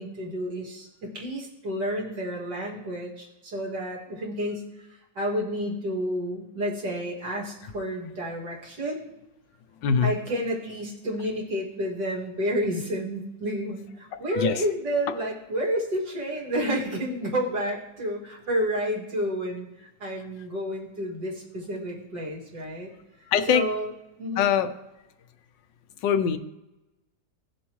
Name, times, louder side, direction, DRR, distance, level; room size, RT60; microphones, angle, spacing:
voice 1, 0.0-9.0 10.0-22.9 23.5-23.9 24.2-24.5, equal, 70° right, -4 dB, 3.0 m, -30 dB
voice 2, 14.3-14.6 23.3-23.7 24.4-24.7 26.0-26.4, left 8 dB, 85° left, 10 dB, 1.4 m, -22 dB
17.5 x 7.1 x 3.1 m, 0.99 s
omnidirectional pair, 1.9 m